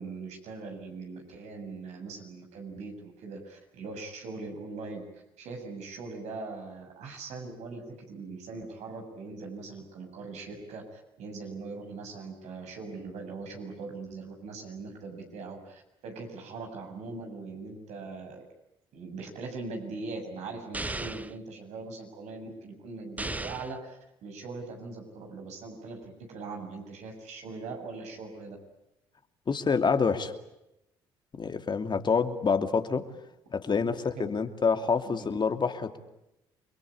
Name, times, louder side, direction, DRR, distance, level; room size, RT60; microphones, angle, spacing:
voice 1, 0.0-5.0 5.4-18.4 18.9-28.6 33.8-34.3 35.0-35.2, right 3 dB, 70° right, 3 dB, 7.4 m, -41 dB
sound 1, 20.7-21.4 23.2-23.8, right 2 dB, 15° right, 1.0 m, -35 dB
voice 2, 29.5-30.3 31.4-33.0 33.5-36.0, left 5 dB, 40° left, 7 dB, 2.7 m, -27 dB
29.0 x 22.5 x 8.7 m, 0.88 s
hypercardioid pair, 60°, 12 cm